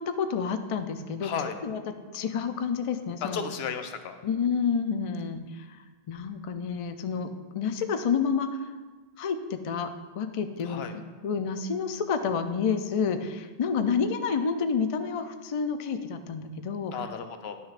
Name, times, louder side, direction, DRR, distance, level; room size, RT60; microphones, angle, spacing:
voice 1, 0.0-3.4 4.2-5.8 6.1-7.3 7.5-8.6 9.2-9.9 10.2-16.9, left 6 dB, 50° left, 8 dB, 0.4 m, -29 dB
voice 2, 1.2-1.6 3.2-4.2 10.6-10.9 16.9-17.6, left 6 dB, 80° left, 8 dB, 0.8 m, -34 dB
10.5 x 6.1 x 2.4 m, 1.3 s
omnidirectional pair, 1.1 m